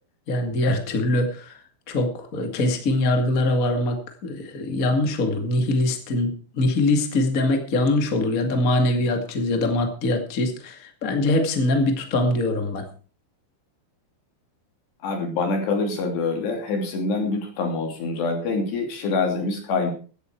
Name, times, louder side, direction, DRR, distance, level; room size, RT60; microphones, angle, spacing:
voice 1, 0.3-1.6 1.9-12.8, left 2 dB, 40° left, 4 dB, 1.2 m, -23 dB
voice 2, 15.0-19.9, left 3 dB, 60° left, 3 dB, 4.8 m, -25 dB
16.5 x 11.0 x 4.6 m, 0.38 s
omnidirectional pair, 5.6 m